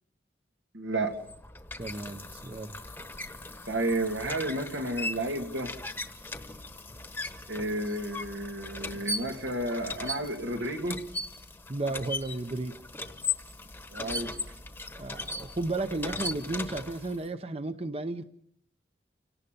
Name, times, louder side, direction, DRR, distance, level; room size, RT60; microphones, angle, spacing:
voice 1, 0.7-1.2 3.7-5.7 7.5-11.0 13.9-14.4, right 1 dB, 90° right, 2.8 m, -31 dB
sound 1, 1.0-17.3, left 3 dB, 10° left, 1.1 m, -38 dB
voice 2, 1.8-2.8 11.7-12.8 14.9-18.2, right 2 dB, 35° right, 0.7 m, -33 dB
29.0 x 18.0 x 5.3 m
head